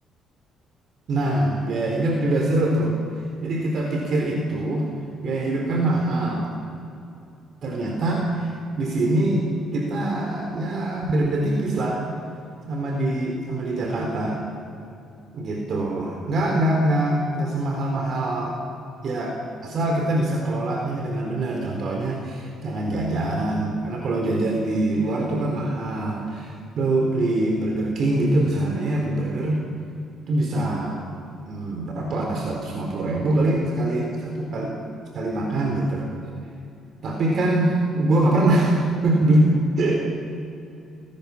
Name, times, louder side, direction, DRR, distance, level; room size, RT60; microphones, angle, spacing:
voice 1, 1.1-3.0 3.4-4.9 5.2-6.5 7.6-8.5 8.8-9.4 9.7-12.0 12.7-14.4 15.3-18.6 19.0-19.3 19.6-29.6 30.3-31.0 31.5-34.8 35.1-36.1 37.0-40.0, right 1 dB, 50° right, 1 dB, 4.2 m, -23 dB
29.5 x 19.5 x 7.3 m, 2.7 s
cardioid pair, 120°, 0 cm